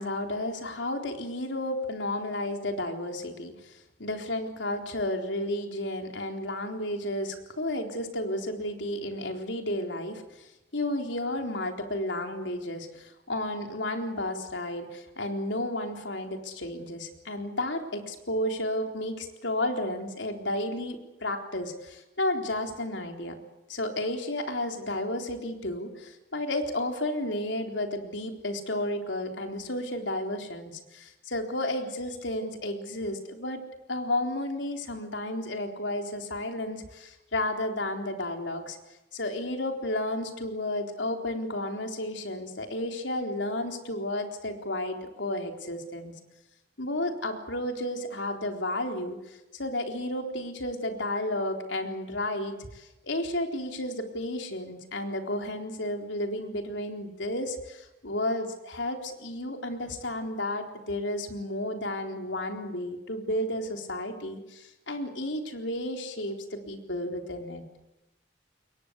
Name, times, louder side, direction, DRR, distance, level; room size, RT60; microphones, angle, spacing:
voice 1, 0.0-23.4 23.7-33.6 33.9-38.8 39.1-46.1 46.8-67.6, left 1 dB, 80° left, 4 dB, 4.0 m, -32 dB
28.0 x 22.5 x 8.3 m, 0.95 s
head